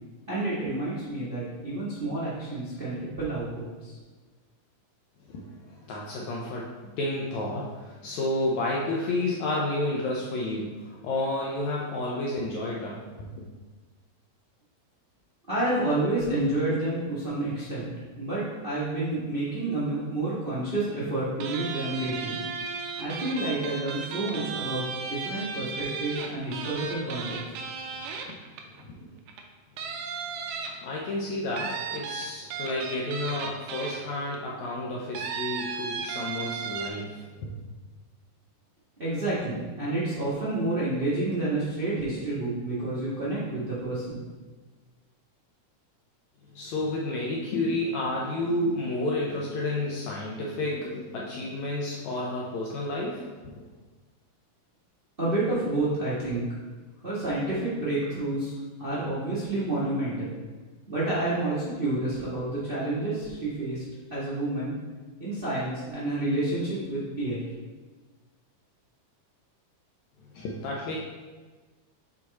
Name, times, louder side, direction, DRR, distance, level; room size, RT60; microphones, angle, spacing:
voice 1, 0.2-4.0 15.5-22.4 23.0-27.8 39.0-44.2 55.2-56.5 57.0-60.4 60.9-63.8 64.1-64.7 65.2-67.4, right 2 dB, 50° right, -9 dB, 0.6 m, -29 dB
voice 2, 5.3-13.4 28.2-28.3 28.8-28.9 30.8-37.6 46.5-53.7 70.3-71.0, left 2 dB, 75° left, -3 dB, 1.7 m, -31 dB
sound 1, 21.4-28.8 29.3-29.4 29.8-31.0 31.6-34.4 35.1-36.9, right 5 dB, 80° right, 2.2 m, -35 dB
6.3 x 4.7 x 4.1 m, 1.4 s
omnidirectional pair, 4.0 m